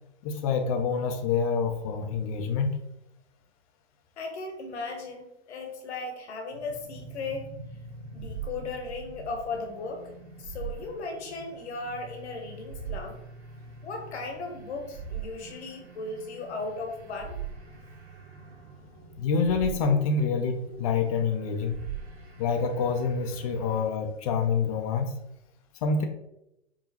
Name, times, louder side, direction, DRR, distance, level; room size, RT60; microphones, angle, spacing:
voice 1, 0.2-2.8 19.2-21.8 22.4-25.1 25.8-26.0, left 5 dB, 30° left, 5 dB, 0.5 m, -27 dB
voice 2, 4.2-7.5 8.1-10.0 10.4-13.2 13.8-17.4, left 3 dB, 65° left, 3 dB, 1.0 m, -36 dB
sound 1, 6.5-23.8, right 5 dB, 65° right, 1.1 m, -42 dB
4.8 x 2.7 x 2.8 m, 0.84 s
figure-of-eight pair, 110°, 35 cm